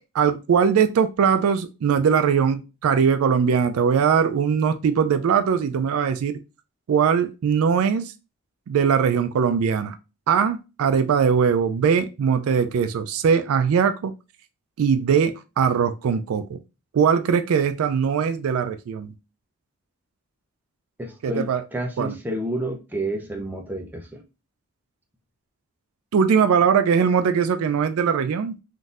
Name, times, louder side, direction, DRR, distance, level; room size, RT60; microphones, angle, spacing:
voice 1, 0.1-6.4 6.9-8.1 8.7-10.0 10.3-14.1 14.8-16.6 16.9-19.1 21.2-21.6 22.0-22.1 26.1-28.6, right 6 dB, 75° right, 0.3 m, -21 dB
voice 2, 21.0-24.2, right 1 dB, 10° right, 0.5 m, -30 dB
3.7 x 2.6 x 2.4 m
head